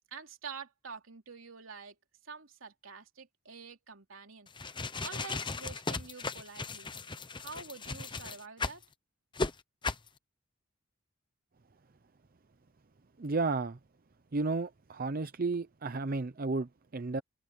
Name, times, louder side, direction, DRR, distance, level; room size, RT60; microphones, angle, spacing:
voice 1, 0.1-1.9 2.2-4.5 5.0-6.9 7.4-8.8, right 5 dB, 85° right, 3.2 m, -47 dB
sound 1, 4.5-8.8 9.3-9.5 9.8-10.1, left 3 dB, 25° left, 0.9 m, -36 dB
voice 2, 13.2-13.8 14.3-17.2, right 3 dB, 45° right, 0.7 m, -33 dB
head